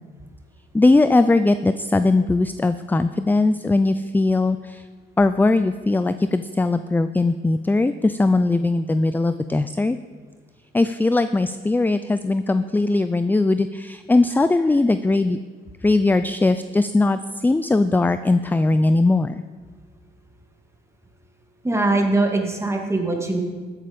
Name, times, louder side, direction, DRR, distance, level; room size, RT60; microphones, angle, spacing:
voice 1, 0.7-4.8 5.2-10.0 10.7-15.4 15.8-19.3, left 2 dB, 10° left, 12 dB, 0.3 m, -19 dB
voice 2, 21.6-23.4, right 2 dB, 15° right, 2 dB, 2.1 m, -21 dB
13.0 x 8.2 x 5.1 m, 1.5 s
cardioid pair, 90°, 20 cm